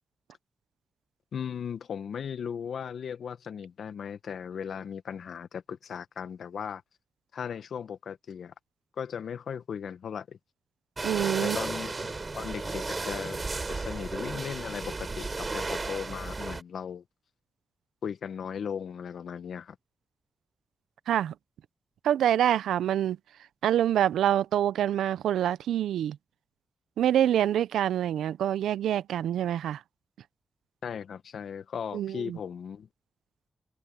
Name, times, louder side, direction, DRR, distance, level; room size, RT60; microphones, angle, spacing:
voice 1, 1.3-6.8 7.3-8.5 9.0-10.4 11.4-13.4 13.7-17.0 18.0-19.7 30.8-32.9, left 7 dB, 75° left, 1.3 m, -37 dB
sound 1, 11.0-16.6, right 3 dB, 40° right, 4.4 m, -34 dB
voice 2, 11.0-11.6 21.1-21.3 22.0-23.2 23.6-26.2 27.0-29.8 31.9-32.4, right 11 dB, 90° right, 0.6 m, -26 dB
supercardioid pair, 40°, 0 cm